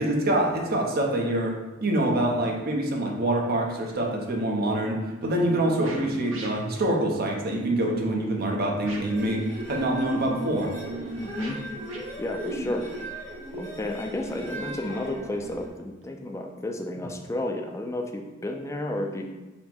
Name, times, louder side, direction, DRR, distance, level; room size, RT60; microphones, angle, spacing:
voice 1, 0.0-1.6 1.8-10.7, right 1 dB, 50° right, 0 dB, 0.6 m, -25 dB
sound 1, 3.9-4.0 5.2-6.8 7.9-8.4 8.7-9.4 10.6-12.1 13.3-13.4 16.0-16.1 16.9-17.1, right 2 dB, 90° right, 0.7 m, -39 dB
sound 2, 8.9-15.7, right 1 dB, 35° right, 1.0 m, -37 dB
voice 2, 11.2-11.6 12.2-12.9 13.6-19.2, left 1 dB, 15° left, 3 dB, 0.3 m, -32 dB
4.3 x 2.1 x 4.2 m, 1.1 s
head